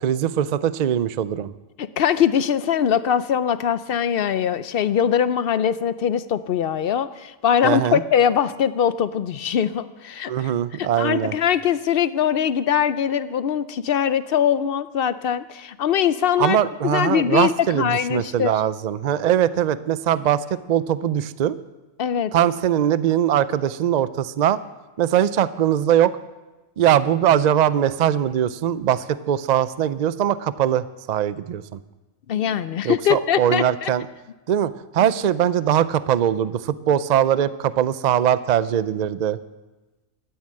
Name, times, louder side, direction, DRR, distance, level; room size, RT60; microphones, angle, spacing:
voice 1, 0.0-1.5 7.6-8.0 10.3-11.3 16.4-21.6 22.3-24.6 25.0-26.1 26.8-31.8 32.8-34.1 34.5-39.4, right 10 dB, 90° right, 15 dB, 0.3 m, -21 dB
voice 2, 1.8-10.5 10.8-16.6 16.8-18.5 22.0-22.3 32.3-33.9, left 9 dB, 60° left, 14 dB, 0.6 m, -22 dB
13.0 x 9.5 x 7.6 m, 1.1 s
omnidirectional pair, 1.4 m